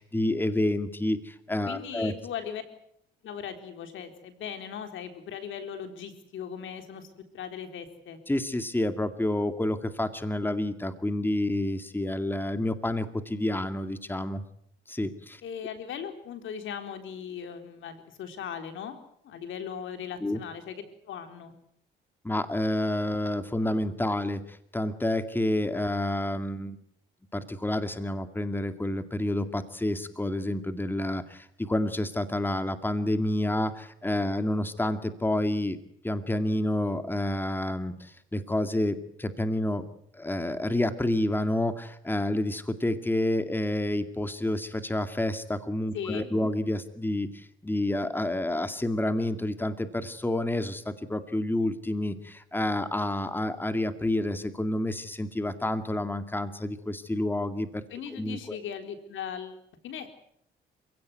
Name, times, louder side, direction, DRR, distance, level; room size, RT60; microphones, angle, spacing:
voice 1, 0.0-2.1 8.3-14.4 14.9-15.4 20.2-20.4 22.2-26.8 27.3-35.8 36.0-39.8 40.1-57.8 58.1-58.6, left 1 dB, 10° left, 9 dB, 2.2 m, -29 dB
voice 2, 1.6-2.6 3.2-7.1 7.3-8.2 15.4-19.0 19.2-20.7 21.1-21.5 45.9-46.2 57.9-59.6 59.8-60.1, left 8 dB, 80° left, 7 dB, 3.9 m, -38 dB
28.0 x 16.5 x 9.4 m, 0.69 s
cardioid pair, 90°, 20 cm